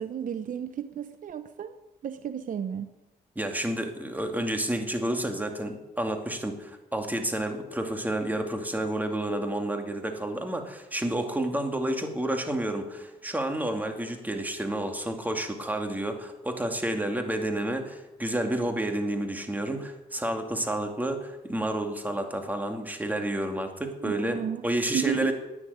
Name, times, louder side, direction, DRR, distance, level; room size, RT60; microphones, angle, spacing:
voice 1, 0.0-1.8 2.0-2.9 24.0-24.6 24.9-25.3, right 9 dB, 55° right, 10 dB, 0.9 m, -32 dB
voice 2, 3.4-25.3, right 1 dB, 10° right, 4 dB, 2.4 m, -30 dB
11.5 x 9.6 x 9.4 m, 1.1 s
cardioid pair, 85°, 16 cm